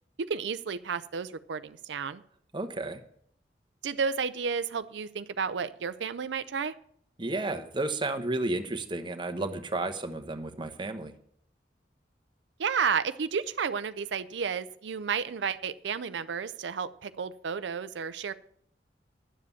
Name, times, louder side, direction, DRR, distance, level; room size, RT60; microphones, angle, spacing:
voice 1, 0.2-2.2 3.8-6.7 12.6-18.3, right 6 dB, 90° right, 13 dB, 0.5 m, -32 dB
voice 2, 2.5-3.0 7.2-11.1, right 2 dB, 25° right, 7 dB, 1.0 m, -32 dB
11.0 x 7.5 x 7.1 m, 0.66 s
head